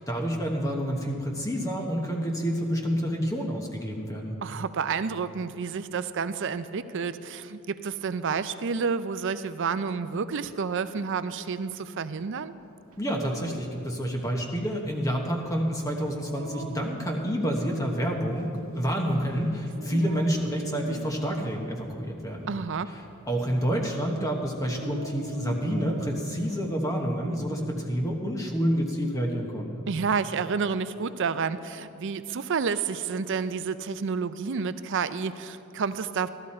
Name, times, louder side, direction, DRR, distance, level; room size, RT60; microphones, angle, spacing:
voice 1, 0.1-4.4 13.0-22.5 22.9-29.9, equal, 15° left, 0 dB, 1.1 m, -28 dB
voice 2, 4.4-12.5 22.5-23.0 29.9-36.3, right 5 dB, 60° right, 13 dB, 0.5 m, -30 dB
Dog, 12.9-26.6, right 1 dB, 75° right, 0.9 m, -43 dB
14.5 x 13.0 x 4.3 m, 2.7 s
head